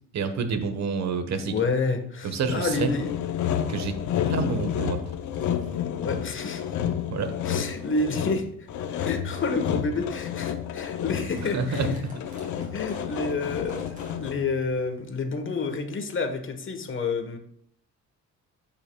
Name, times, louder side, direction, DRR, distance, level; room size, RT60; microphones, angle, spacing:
voice 1, 0.1-1.5 2.2-2.9 3.7-4.0 4.3-5.0 7.1-7.3 11.5-11.9, right 5 dB, 60° right, 8 dB, 1.2 m, -28 dB
voice 2, 1.5-3.1 4.2-4.4 6.0-6.6 7.4-11.8 12.4-17.4, left 3 dB, 40° left, 7 dB, 1.2 m, -29 dB
sound 1, 2.0-2.2 2.7-2.8 3.2-3.5 4.6-4.7 5.3-5.8 6.6-6.7 7.3-7.5 8.1-8.2 8.9-9.1 9.7-9.8 10.2-10.3 10.5-10.7 11.0-14.7 15.0-15.1 15.9-16.0, right 2 dB, 25° right, 3.3 m, -50 dB
Sawing, 2.5-14.5, left 9 dB, 70° left, 0.7 m, -30 dB
13.5 x 5.6 x 2.3 m, 0.67 s
cardioid pair, 90°, 30 cm